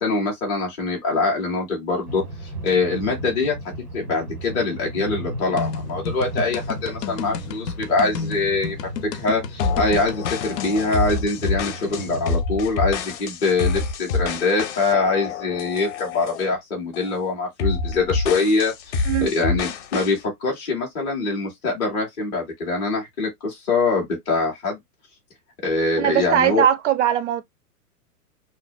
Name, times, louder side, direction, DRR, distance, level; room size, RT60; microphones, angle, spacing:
voice 1, 0.0-2.2 2.6-3.5 3.9-8.9 9.2-24.8 25.6-26.6, left 3 dB, 10° left, 0.3 m, -23 dB
sound 1, 2.0-12.3, right 1 dB, 90° right, 1.4 m, -35 dB
sound 2, 5.6-10.7, left 6 dB, 90° left, 0.6 m, -32 dB
sound 3, 9.6-16.6 16.9-17.2 17.6-20.2, left 4 dB, 50° left, 0.6 m, -27 dB
voice 2, 26.0-27.4, right 10 dB, 50° right, 0.5 m, -20 dB
2.5 x 2.1 x 2.3 m
hypercardioid pair, 120°, 47 cm